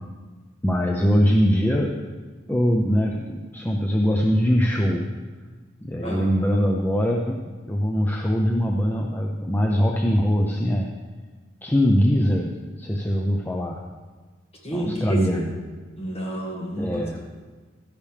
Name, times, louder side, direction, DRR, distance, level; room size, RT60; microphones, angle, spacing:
voice 1, 0.6-2.1 2.5-5.1 5.8-10.9 11.6-13.8 14.7-15.6 16.8-17.2, equal, 10° left, 1 dB, 0.5 m, -22 dB
voice 2, 14.6-15.4 16.0-16.9, right 1 dB, 30° left, -2 dB, 2.0 m, -30 dB
12.0 x 10.5 x 3.3 m, 1.4 s
head